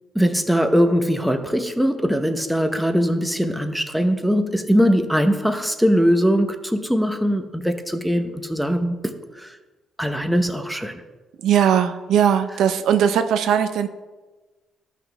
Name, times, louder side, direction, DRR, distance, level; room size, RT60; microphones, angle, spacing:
voice 1, 0.1-9.6 10.0-11.0, equal, ahead, 7 dB, 0.8 m, -21 dB
voice 2, 11.4-13.9, right 9 dB, 75° right, 8 dB, 0.5 m, -19 dB
12.5 x 5.9 x 3.4 m, 1.3 s
cardioid pair, 90°, 0 cm